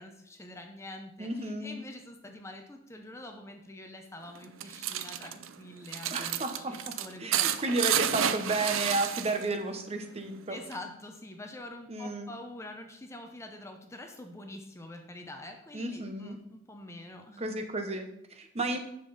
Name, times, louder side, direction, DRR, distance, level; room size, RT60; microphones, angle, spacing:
voice 1, 0.0-7.5 10.5-17.5, left 1 dB, 15° left, 4 dB, 0.7 m, -45 dB
voice 2, 1.2-1.8 6.1-6.7 7.2-10.6 11.9-12.3 15.7-16.4 17.4-18.8, right 2 dB, 30° right, 6 dB, 0.9 m, -32 dB
sound 1, 4.3-9.6 9.9-10.8, right 10 dB, 80° right, 0.5 m, -31 dB
9.8 x 6.8 x 4.1 m, 0.79 s
head